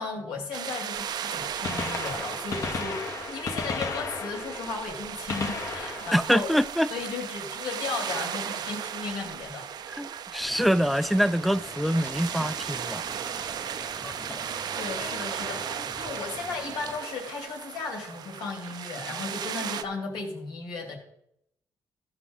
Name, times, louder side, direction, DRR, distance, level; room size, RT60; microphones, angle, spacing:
voice 1, 0.0-6.5 6.9-9.7 14.7-21.0, left 4 dB, 85° left, 2.8 m, -35 dB
sound 1, 0.5-19.8, right 9 dB, 65° right, 0.6 m, -36 dB
Gunshot gunfire, 1.0-1.1 1.5-7.4 9.3-9.4 10.5-10.6 12.1-12.2 13.6-13.7 13.9-14.0, left 4 dB, 45° left, 1.4 m, -35 dB
voice 2, 6.1-6.9 10.0-13.0, equal, ahead, 0.4 m, -25 dB
sound 2, 10.4-17.0, left 2 dB, 30° left, 2.2 m, -44 dB
15.0 x 6.0 x 3.9 m
cardioid pair, 80°, 7 cm